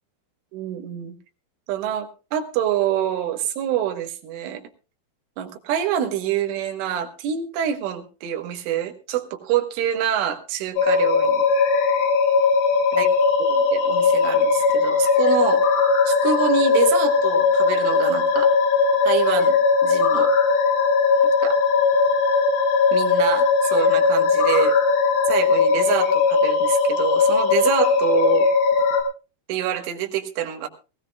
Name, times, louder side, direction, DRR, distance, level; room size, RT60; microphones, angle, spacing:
voice 1, 0.5-1.2 1.7-4.6 5.4-11.4 13.0-13.1 13.4-15.6 16.1-18.5 19.1-19.6 19.8-20.3 21.4-21.6 22.9-24.7 25.3-28.5 29.5-30.7, right 10 dB, 90° right, 5 dB, 3.9 m, -26 dB
sound 1, 10.8-29.0, left 4 dB, 70° left, 4.5 m, -19 dB
21.0 x 16.0 x 2.4 m, 0.32 s
omnidirectional pair, 5.4 m